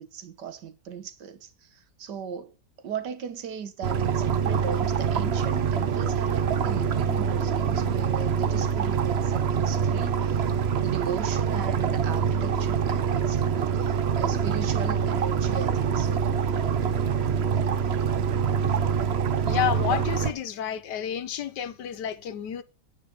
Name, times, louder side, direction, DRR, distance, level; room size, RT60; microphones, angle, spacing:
voice 1, 0.0-16.3, right 7 dB, 85° right, 1.8 m, -38 dB
sound 1, 3.8-20.3, right 7 dB, 50° right, 0.8 m, -25 dB
voice 2, 19.4-22.6, left 9 dB, 85° left, 1.6 m, -30 dB
9.3 x 9.1 x 5.3 m
omnidirectional pair, 1.8 m